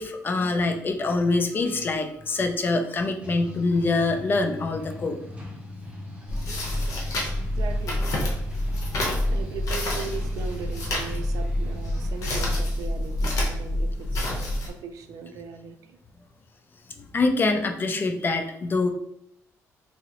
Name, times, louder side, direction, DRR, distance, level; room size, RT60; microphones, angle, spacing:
voice 1, 0.0-5.2 9.2-9.3 17.0-18.9, left 3 dB, 35° left, 5 dB, 0.4 m, -25 dB
sound 1, 3.2-12.5, equal, 20° right, 0.8 m, -40 dB
sound 2, 6.3-14.7, left 1 dB, 65° left, 0.8 m, -27 dB
voice 2, 7.4-8.3 9.3-16.0, right 5 dB, 75° right, 7 dB, 0.4 m, -39 dB
3.6 x 2.0 x 2.9 m, 0.76 s
cardioid pair, 115°, 6 cm